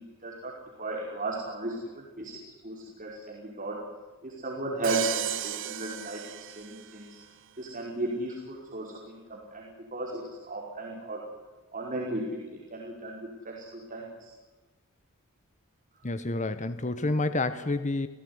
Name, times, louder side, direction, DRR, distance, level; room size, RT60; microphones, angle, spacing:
voice 1, 0.0-2.4 2.6-3.8 4.2-6.3 6.6-7.2 7.6-11.2 11.7-14.3, right 2 dB, 35° right, -2 dB, 5.1 m, -35 dB
Crash cymbal, 4.8-7.0, right 10 dB, 60° right, 1.1 m, -34 dB
voice 2, 16.0-18.1, left 2 dB, 35° left, 11 dB, 1.2 m, -29 dB
29.5 x 18.5 x 9.6 m, 1.2 s
head